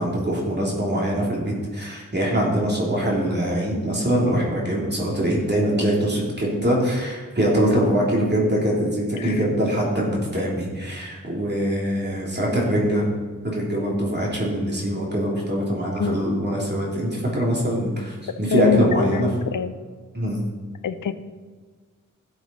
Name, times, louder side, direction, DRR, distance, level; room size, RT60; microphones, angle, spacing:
voice 1, 0.0-13.1 13.4-19.3 20.1-20.4, equal, 30° right, -4 dB, 3.3 m, -23 dB
voice 2, 16.0-16.5 18.5-19.7 20.8-21.1, left 8 dB, 75° left, 12 dB, 0.7 m, -25 dB
13.0 x 7.7 x 4.2 m, 1.5 s
cardioid pair, 65°, 32 cm